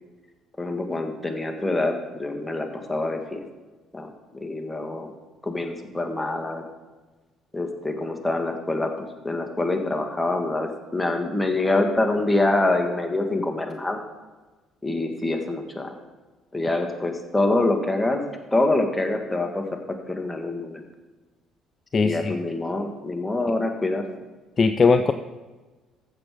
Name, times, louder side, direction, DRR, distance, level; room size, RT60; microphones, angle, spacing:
voice 1, 0.6-3.4 3.9-5.1 5.4-6.7 7.5-14.0 14.8-15.9 16.5-18.2 18.5-19.8 20.1-20.8 22.0-24.0, left 2 dB, 10° left, 4 dB, 1.7 m, -25 dB
voice 2, 21.9-22.3 24.6-25.1, left 4 dB, 35° left, 9 dB, 0.4 m, -19 dB
14.5 x 6.4 x 3.7 m, 1.2 s
hypercardioid pair, 50°, 0 cm